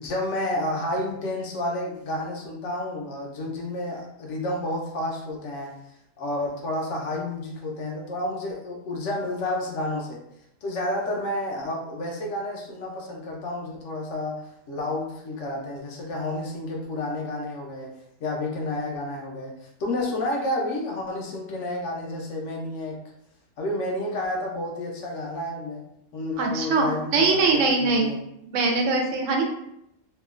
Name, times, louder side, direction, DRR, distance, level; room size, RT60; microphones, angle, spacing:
voice 1, 0.0-5.8 6.2-10.2 10.6-17.9 18.2-23.0 23.6-25.8 26.1-28.2, left 1 dB, 70° left, -1 dB, 1.0 m, -30 dB
voice 2, 26.4-28.1 28.4-29.4, right 3 dB, 75° right, 2 dB, 0.9 m, -22 dB
2.8 x 2.3 x 2.4 m, 0.78 s
omnidirectional pair, 1.3 m